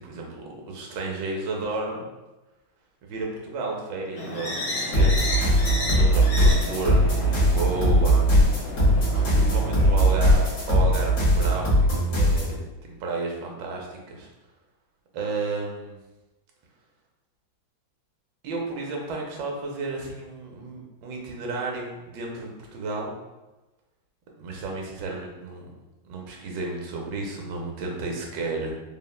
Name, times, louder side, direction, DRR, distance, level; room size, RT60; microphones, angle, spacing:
voice 1, 0.0-2.1 3.0-5.1 5.9-8.2 9.1-14.3 15.1-16.0 18.4-23.1 24.4-25.7 26.0-28.7, right 3 dB, 75° right, 0 dB, 1.2 m, -32 dB
sound 1, 4.2-10.9, left 1 dB, 75° left, 1.4 m, -33 dB
sound 2, 4.9-12.5, equal, 55° left, 1.2 m, -20 dB
3.6 x 2.0 x 2.2 m, 1.1 s
omnidirectional pair, 2.1 m